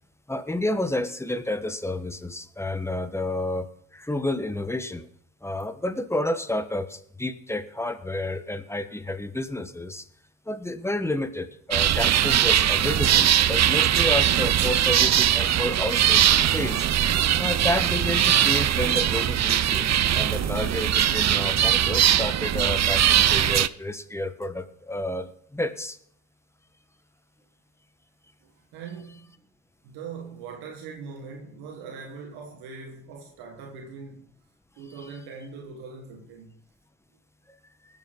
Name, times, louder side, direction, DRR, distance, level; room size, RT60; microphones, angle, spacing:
voice 1, 0.3-3.7 3.9-5.1 5.4-10.1 10.5-16.9 17.4-26.0, left 1 dB, 5° left, 1.4 m, -30 dB
sound 1, 11.7-23.7, right 10 dB, 45° right, 0.6 m, -21 dB
voice 2, 28.4-29.4 29.8-34.3 34.8-36.6, right 5 dB, 85° right, 1.6 m, -41 dB
19.5 x 7.3 x 3.9 m
supercardioid pair, 50°, 38 cm